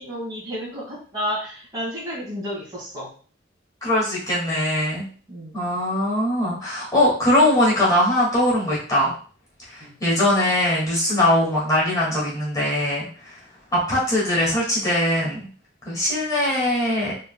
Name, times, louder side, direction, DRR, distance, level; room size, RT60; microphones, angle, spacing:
voice 1, 0.0-3.1 5.3-5.6 9.8-9.9, equal, 20° right, -6 dB, 2.1 m, -31 dB
voice 2, 3.8-5.1 5.5-9.1 9.7-13.4 13.7-15.4 15.9-17.1, left 1 dB, 20° left, -6 dB, 2.1 m, -21 dB
4.8 x 4.3 x 2.3 m, 0.42 s
head